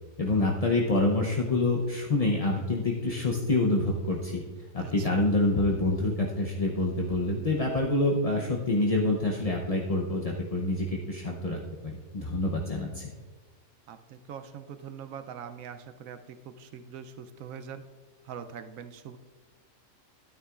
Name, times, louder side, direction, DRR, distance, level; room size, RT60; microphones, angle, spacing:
voice 1, 0.2-4.4 4.7-13.1, left 2 dB, 35° left, -1 dB, 0.6 m, -27 dB
voice 2, 4.8-5.2 13.9-17.8 18.2-19.2, right 7 dB, 75° right, 9 dB, 1.0 m, -43 dB
12.5 x 9.6 x 2.4 m, 1.4 s
omnidirectional pair, 1.4 m